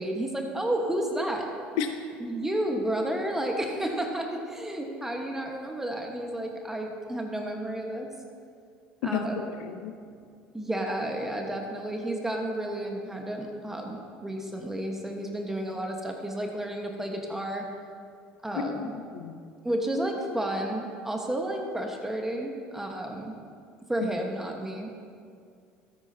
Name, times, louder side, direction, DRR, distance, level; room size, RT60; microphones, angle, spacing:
voice 1, 0.0-1.5 2.2-8.1 9.0-9.4 10.5-17.7 18.4-18.9 19.6-23.3 23.9-24.9, right 1 dB, 10° right, 1 dB, 1.3 m, -31 dB
voice 2, 9.1-9.9 18.6-19.4, left 6 dB, 80° left, 7 dB, 0.6 m, -32 dB
13.5 x 9.7 x 2.8 m, 2.3 s
supercardioid pair, 80°, 4 cm